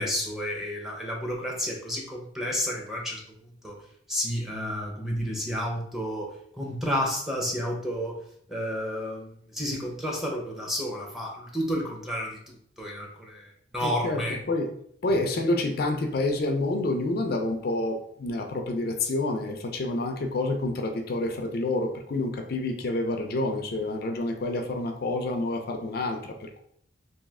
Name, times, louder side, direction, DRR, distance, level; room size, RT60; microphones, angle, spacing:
voice 1, 0.0-3.2 3.6-3.7 4.1-6.3 6.6-8.2 8.5-12.4 12.8-13.4 13.7-14.4, equal, ahead, -2 dB, 0.7 m, -31 dB
voice 2, 13.8-14.7 15.0-26.6, left 2 dB, 55° left, 5 dB, 0.4 m, -28 dB
3.1 x 2.7 x 3.5 m, 0.67 s
head